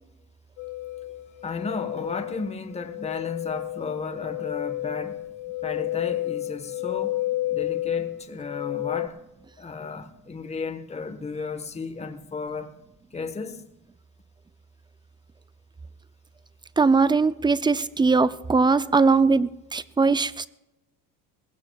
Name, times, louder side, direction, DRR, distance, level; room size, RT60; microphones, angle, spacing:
sound 1, 0.6-9.1, left 16 dB, 65° left, 1.3 m, -31 dB
voice 1, 1.4-5.2 5.6-7.2 7.5-9.2 9.6-12.7 13.1-13.6, left 4 dB, 15° left, 1.2 m, -34 dB
voice 2, 16.8-20.5, right 4 dB, 10° right, 0.4 m, -20 dB
20.5 x 16.0 x 2.3 m
supercardioid pair, 85°, 45 cm